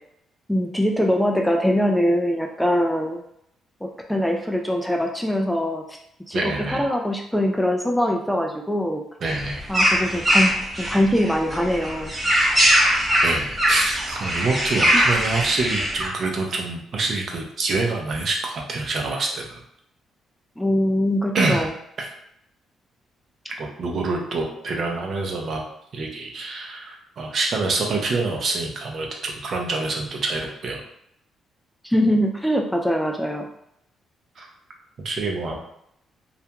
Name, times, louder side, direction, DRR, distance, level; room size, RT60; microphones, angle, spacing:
voice 1, 0.5-3.2 3.8-6.0 6.3-6.4 6.7-9.0 9.7-12.1 20.6-21.7 31.8-33.5, equal, 5° left, 1 dB, 0.3 m, -22 dB
voice 2, 6.3-6.8 9.2-9.7 13.2-19.6 21.3-21.7 22.0-22.1 23.6-25.6 25.9-30.8 34.4-34.5 35.0-35.6, right 3 dB, 55° right, 1 dB, 0.6 m, -26 dB
sound 1, 9.3-16.1, equal, 20° right, 0.8 m, -21 dB
2.4 x 2.1 x 2.8 m, 0.74 s
cardioid pair, 90°, 0 cm